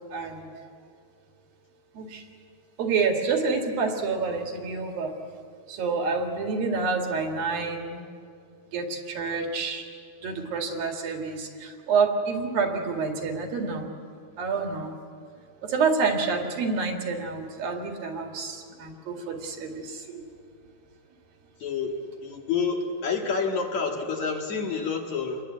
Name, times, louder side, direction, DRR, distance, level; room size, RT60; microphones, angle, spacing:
voice 1, 0.1-0.6 1.9-2.2 2.8-5.1 5.7-8.1 8.7-9.8 10.2-13.9 14.4-15.0 15.6-20.2, right 4 dB, 65° right, 3 dB, 3.9 m, -28 dB
voice 2, 21.6-25.4, left 5 dB, 55° left, 1 dB, 2.8 m, -28 dB
28.5 x 22.0 x 8.4 m, 2.2 s
omnidirectional pair, 4.5 m